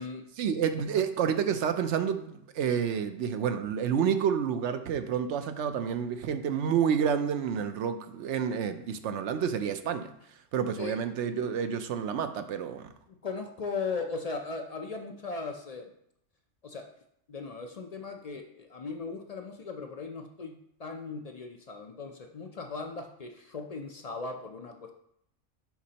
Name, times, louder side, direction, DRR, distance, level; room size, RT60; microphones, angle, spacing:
voice 1, 0.4-10.1 10.5-12.9, right 7 dB, 70° right, 9 dB, 0.9 m, -29 dB
voice 2, 13.1-15.9 16.6-16.8 17.3-20.5 20.8-25.0, left 4 dB, 50° left, 4 dB, 0.4 m, -38 dB
10.5 x 4.1 x 2.9 m, 0.73 s
omnidirectional pair, 1.3 m